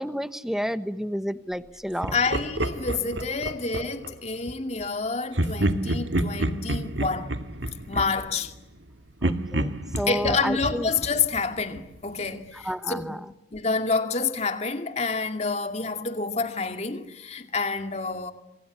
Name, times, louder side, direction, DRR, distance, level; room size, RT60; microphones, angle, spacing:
voice 1, 0.0-2.1 9.2-10.9 12.5-13.2, equal, 5° right, 1.1 m, -30 dB
Laughter, 2.0-4.1 5.3-8.8 9.2-12.0, right 1 dB, 85° right, 2.0 m, -29 dB
voice 2, 2.1-7.4 7.9-8.5 10.1-13.2 13.5-18.3, left 4 dB, 35° left, 2.5 m, -28 dB
27.0 x 25.0 x 8.3 m
head